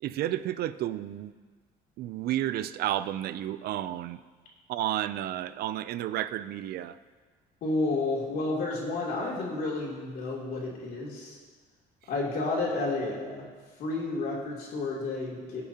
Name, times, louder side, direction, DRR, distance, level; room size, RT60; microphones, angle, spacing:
voice 1, 0.0-1.3 2.0-4.2 4.7-7.0, right 12 dB, 70° right, 15 dB, 0.5 m, -31 dB
voice 2, 7.6-11.4 12.1-13.5 13.8-15.6, left 2 dB, 65° left, -4 dB, 3.0 m, -31 dB
18.5 x 6.7 x 2.9 m, 1.5 s
cardioid pair, 110°, 17 cm